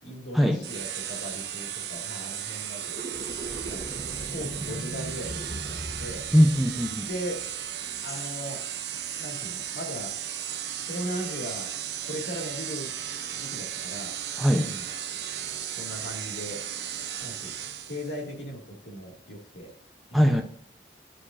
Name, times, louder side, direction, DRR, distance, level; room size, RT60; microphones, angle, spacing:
voice 1, 0.0-3.1 3.6-3.8 4.3-6.3 7.0-7.5 8.0-8.6 9.2-10.2 10.9-11.7 12.0-12.9 13.3-14.1 14.6-14.9 15.8-16.7 17.2-19.7 20.1-20.3, equal, 85° left, 0 dB, 2.1 m, -38 dB
sound 1, 0.6-18.2, right 10 dB, 70° right, 0.7 m, -35 dB
sound 2, 2.8-8.1, right 1 dB, 50° right, 1.0 m, -39 dB
voice 2, 6.3-7.1 14.4-14.7 20.1-20.4, equal, ahead, 2 dB, 0.6 m, -21 dB
11.5 x 5.0 x 2.5 m, 0.62 s
head